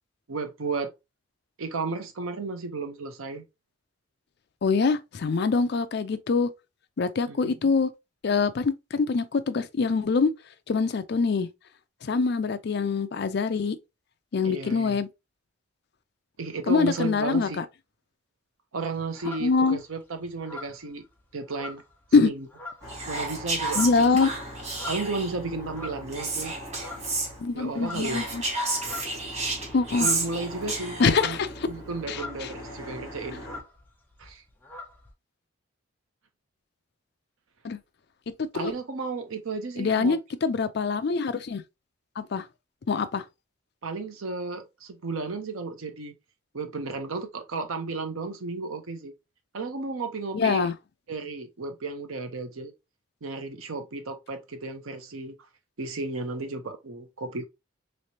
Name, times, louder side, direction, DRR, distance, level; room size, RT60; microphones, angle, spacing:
voice 1, 0.3-0.9 1.6-3.4 7.3-7.5 14.4-15.0 16.4-17.6 18.7-21.0 21.3-21.8 22.2-22.5 23.1-24.3 24.9-26.5 27.5-28.3 30.0-31.4 31.7-33.4 34.2-34.4 38.5-40.2 43.8-46.1 46.5-49.1 49.5-50.7 51.1-52.7 53.2-55.4 55.8-57.4, right 3 dB, 80° right, 0.7 m, -33 dB
voice 2, 4.6-6.5 7.0-7.9 8.2-10.3 10.7-11.5 12.0-13.8 14.3-15.1 16.7-17.6 19.4-19.8 22.1-22.3 23.8-24.3 27.4-28.4 29.7-30.1 31.0-31.5 32.1-32.5 37.6-37.8 38.4-38.7 39.8-41.6 42.2-42.4 42.9-43.2 50.3-50.7, left 4 dB, 50° left, 0.4 m, -24 dB
sound 1, 18.8-19.9 20.3-22.2 22.5-23.0 23.5-26.4 26.7-27.3 27.6-32.6 32.9-33.0 33.2-35.1, left 2 dB, 10° left, 0.6 m, -43 dB
sound 2, 22.8-33.6, equal, 15° right, 1.5 m, -42 dB
Whispering, 22.9-25.4 26.1-27.3 27.9-31.2, right 2 dB, 30° right, 0.9 m, -31 dB
3.3 x 3.2 x 2.7 m
head